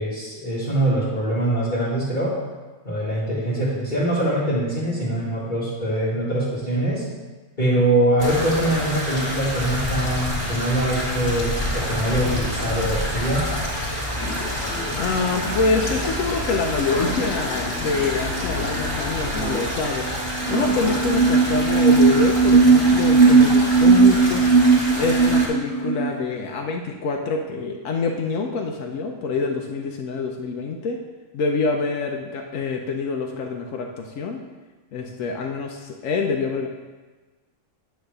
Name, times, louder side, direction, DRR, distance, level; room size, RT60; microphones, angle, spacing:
voice 1, 0.0-2.4 2.8-7.0 7.6-13.4, right 1 dB, 35° left, -10 dB, 2.1 m, -23 dB
sound 1, 8.2-25.5, equal, 15° left, 2.2 m, -28 dB
sound 2, 13.1-26.6, left 3 dB, 65° left, 1.5 m, -36 dB
voice 2, 15.0-20.1 20.5-24.4 24.9-31.0 31.3-34.4 34.9-36.7, left 4 dB, 85° left, 1 dB, 1.1 m, -26 dB
sound 3, 20.0-20.1 20.4-26.1, right 4 dB, 60° right, 1.0 m, -16 dB
9.3 x 3.5 x 6.5 m, 1.3 s
omnidirectional pair, 1.3 m